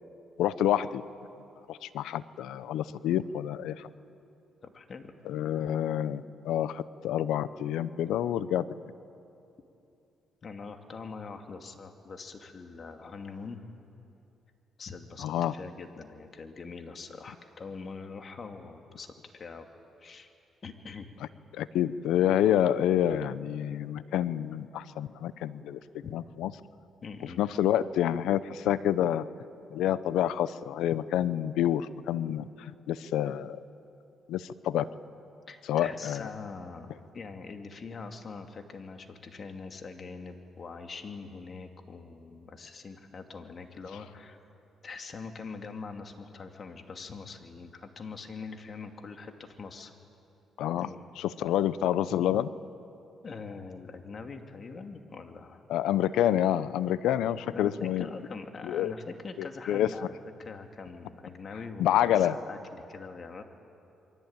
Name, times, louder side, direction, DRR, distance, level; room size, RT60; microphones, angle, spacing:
voice 1, 0.4-1.0 1.7-3.9 5.3-8.7 15.2-15.5 21.5-25.8 26.1-26.5 27.4-29.3 29.7-32.4 32.9-33.6 34.3-34.9 35.7-36.3 50.6-50.9 51.2-52.5 55.7-58.0 58.6-58.9 59.4-59.9 61.8-62.4, left 11 dB, 85° left, 15 dB, 0.8 m, -28 dB
voice 2, 4.6-5.1 10.4-13.6 14.8-19.7 20.0-20.3 20.6-21.1 26.0-26.1 27.0-27.4 35.5-44.4 44.8-49.9 50.7-51.0 53.2-55.6 57.5-60.1 60.4-63.4, left 4 dB, 45° left, 5 dB, 2.6 m, -43 dB
28.5 x 23.0 x 8.9 m, 2.8 s
cardioid pair, 90°, 0 cm